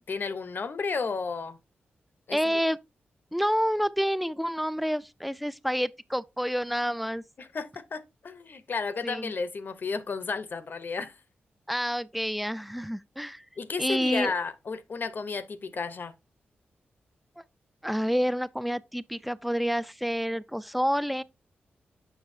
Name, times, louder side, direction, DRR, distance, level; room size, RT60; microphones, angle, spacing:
voice 1, 0.1-1.6 2.3-2.4 7.4-11.2 13.6-16.1, left 4 dB, 55° left, 0.7 m, -33 dB
voice 2, 2.3-2.8 3.3-7.2 9.0-9.3 11.7-13.5 13.8-14.3 17.4-17.5 17.8-21.2, equal, ahead, 0.4 m, -28 dB
7.2 x 5.9 x 2.6 m
cardioid pair, 65°, 4 cm